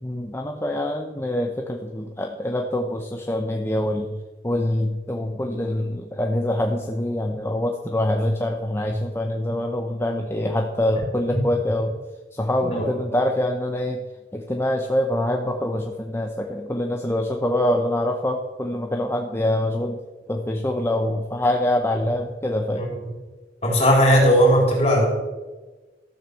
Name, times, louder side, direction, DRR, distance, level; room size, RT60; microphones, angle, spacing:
voice 1, 0.0-4.2 4.4-11.9 12.3-14.0 14.3-20.0 20.3-22.8, left 1 dB, 15° left, 2 dB, 0.8 m, -25 dB
voice 2, 23.6-25.0, equal, 35° left, -1 dB, 4.1 m, -17 dB
13.5 x 7.4 x 6.9 m, 1.3 s
head